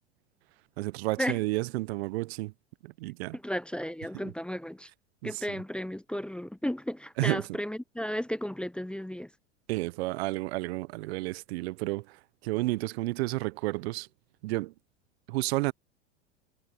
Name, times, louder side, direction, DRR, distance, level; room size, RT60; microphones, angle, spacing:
voice 1, 0.8-2.5 2.8-3.4 4.2-4.3 5.2-5.4 7.2-7.4 9.7-12.2 12.4-14.1 14.4-14.7 15.3-15.7, right 20 dB, 65° right, 0.9 m, -31 dB
voice 2, 3.3-4.9 5.2-9.3, equal, 5° left, 0.8 m, -34 dB
hypercardioid pair, 95°, 35 cm